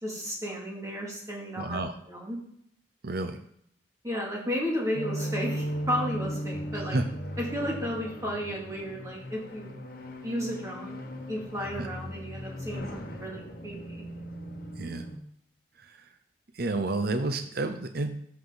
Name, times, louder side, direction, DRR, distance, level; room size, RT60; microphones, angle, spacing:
voice 1, 0.0-1.8 2.1-2.4 4.0-7.0 7.4-9.7 10.2-10.9 11.3-14.0, equal, 20° right, -3 dB, 2.5 m, -33 dB
voice 2, 1.6-1.9 3.0-3.4 6.7-7.1 11.8-11.9 14.8-15.0 15.8-16.0 16.5-18.1, right 2 dB, 55° right, 7 dB, 0.7 m, -30 dB
sound 1, 4.9-15.2, equal, 55° left, 1.1 m, -37 dB
13.0 x 5.0 x 4.0 m, 0.70 s
head